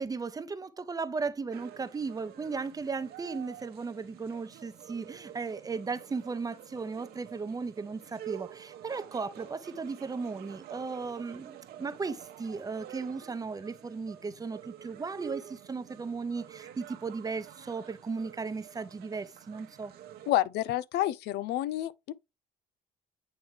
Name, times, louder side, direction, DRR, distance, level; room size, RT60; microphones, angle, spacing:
voice 1, 0.0-19.9, right 4 dB, 20° right, 0.6 m, -36 dB
sound 1, 1.5-20.3, right 11 dB, 70° right, 1.0 m, -48 dB
voice 2, 20.3-22.1, left 14 dB, 75° left, 0.4 m, -29 dB
8.8 x 3.5 x 3.3 m
cardioid pair, 110°, 17 cm